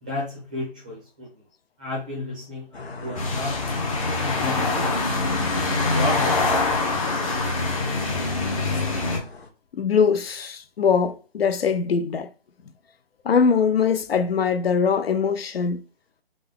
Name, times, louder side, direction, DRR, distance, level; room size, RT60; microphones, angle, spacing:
voice 1, 0.0-1.4 1.8-3.6 4.0-4.9 5.5-6.9, left 1 dB, 10° right, 0.5 m, -33 dB
sound 1, 2.7-9.5, left 3 dB, 90° left, 1.0 m, -41 dB
sound 2, 3.2-9.2, left 3 dB, 35° left, 0.8 m, -24 dB
voice 2, 9.7-12.3 13.2-15.8, left 6 dB, 70° left, 0.6 m, -22 dB
3.8 x 2.3 x 3.6 m
hypercardioid pair, 160°, 31 cm